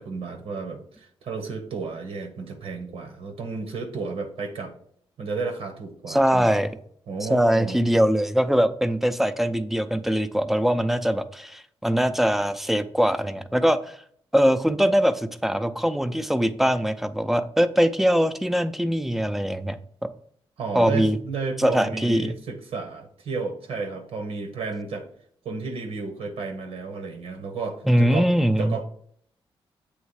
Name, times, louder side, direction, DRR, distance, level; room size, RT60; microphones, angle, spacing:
voice 1, 0.0-4.7 5.2-6.5 7.1-7.8 20.6-25.1 25.4-28.3 28.6-28.8, right 4 dB, 90° right, 5 dB, 1.0 m, -32 dB
voice 2, 6.1-6.8 7.2-14.0 14.3-19.8 20.7-21.2 21.6-22.3 27.8-28.8, equal, 5° right, 10 dB, 0.5 m, -22 dB
8.1 x 3.1 x 4.8 m, 0.63 s
cardioid pair, 95°, 10 cm